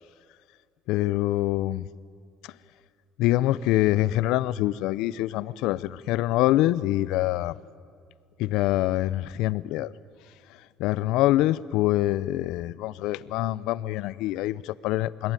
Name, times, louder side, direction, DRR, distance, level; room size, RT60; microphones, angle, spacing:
voice 1, 0.9-1.9 2.4-2.6 3.2-7.6 8.4-9.9 10.4-15.3, left 15 dB, 80° left, 18 dB, 0.7 m, -25 dB
28.0 x 21.5 x 9.2 m, 2.3 s
supercardioid pair, 85°, 0 cm